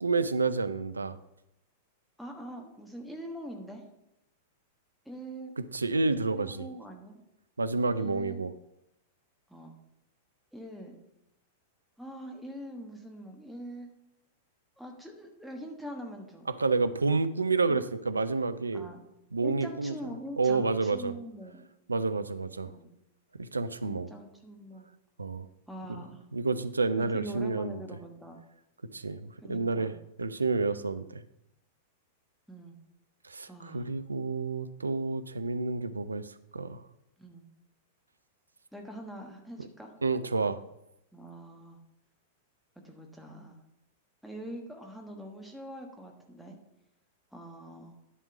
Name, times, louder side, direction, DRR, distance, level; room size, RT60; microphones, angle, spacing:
voice 1, 0.0-1.2 5.6-6.7 7.6-8.5 16.5-18.9 19.3-19.9 20.4-21.1 21.9-22.7 23.4-24.1 25.2-25.5 25.9-26.0 26.3-27.8 28.9-29.9 30.2-31.2 33.2-36.8 40.0-40.6, right 4 dB, 80° right, 12 dB, 0.5 m, -29 dB
voice 2, 2.2-3.9 5.0-5.5 6.3-7.2 8.0-8.5 9.5-9.7 10.5-10.9 12.0-13.9 14.8-16.5 17.6-17.8 18.7-19.0 19.4-21.7 22.7-22.9 23.8-24.9 25.7-26.2 27.0-28.4 29.4-30.0 32.5-32.8 33.5-33.9 37.2-37.5 38.7-39.9 41.1-41.8 42.8-43.6 44.2-46.6 47.3-48.0, equal, ahead, 2 dB, 1.3 m, -43 dB
11.0 x 3.6 x 7.0 m, 0.84 s
figure-of-eight pair, 95°, 0 cm